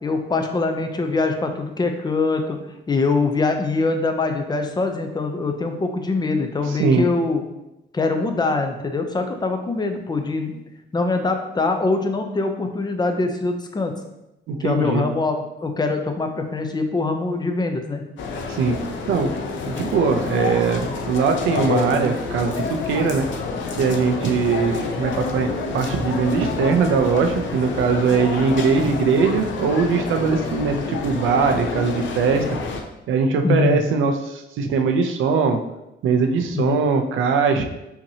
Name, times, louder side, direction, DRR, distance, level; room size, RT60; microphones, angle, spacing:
voice 1, 0.0-2.6 2.9-7.4 7.9-10.6 10.9-13.9 14.6-18.0 33.4-33.8 36.5-36.9, left 3 dB, 20° left, 5 dB, 0.6 m, -23 dB
voice 2, 14.5-15.1 18.5-18.8 19.1-19.3 19.7-23.3 23.8-32.5 33.1-35.6 36.0-37.6, right 5 dB, 80° right, 6 dB, 0.6 m, -21 dB
sound 1, 18.2-32.8, left 4 dB, 70° left, 0.6 m, -28 dB
5.7 x 2.9 x 2.8 m, 0.90 s
cardioid pair, 90°, 20 cm